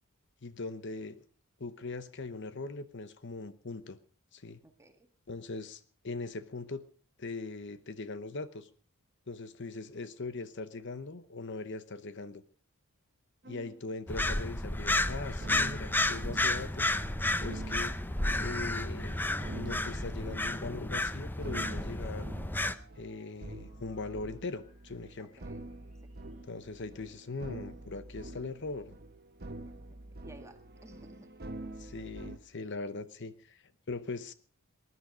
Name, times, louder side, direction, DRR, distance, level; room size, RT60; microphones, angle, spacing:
voice 1, 0.4-1.2 1.6-4.0 4.3-4.6 5.3-6.8 7.2-8.7 9.3-12.4 13.5-16.9 17.4-17.9 18.4-19.2 19.5-22.3 23.0-25.3 26.4-28.9 31.8-34.3, left 3 dB, 55° left, 12 dB, 0.9 m, -40 dB
voice 2, 4.6-5.1 25.2-25.6 26.0-26.1 29.7-29.8 30.2-31.3, right 1 dB, 15° right, 6 dB, 1.8 m, -56 dB
sound 1, 13.4-13.8 14.2-14.5 15.4-32.4, right 2 dB, 45° right, 1.1 m, -46 dB
sound 2, 14.1-22.7, left 2 dB, 10° left, 0.6 m, -32 dB
sound 3, 17.4-26.5, left 1 dB, 85° left, 5.0 m, -61 dB
20.0 x 11.0 x 5.0 m, 0.42 s
head